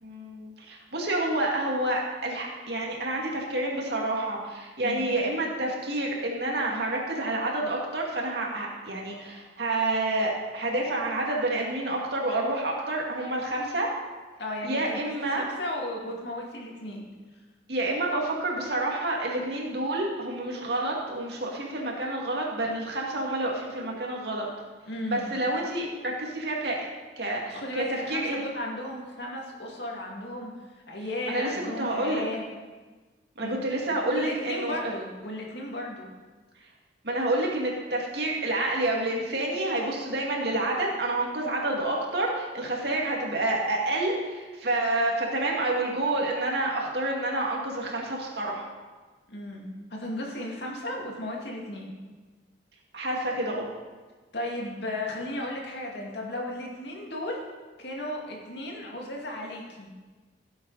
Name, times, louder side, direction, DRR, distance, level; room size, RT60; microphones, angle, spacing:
voice 1, 0.0-13.9 14.6-15.4 17.7-24.5 25.1-26.8 27.2-28.4 31.3-32.2 33.4-34.9 37.0-48.7 52.9-53.7, right 2 dB, 60° right, -2 dB, 2.3 m, -29 dB
voice 2, 4.8-5.1 14.4-17.1 24.9-25.3 27.5-30.5 30.9-32.4 33.4-33.6 34.1-36.1 49.3-51.9 54.3-57.4 57.8-59.9, left 1 dB, 65° left, -1 dB, 2.3 m, -35 dB
16.0 x 8.0 x 4.1 m, 1.3 s
head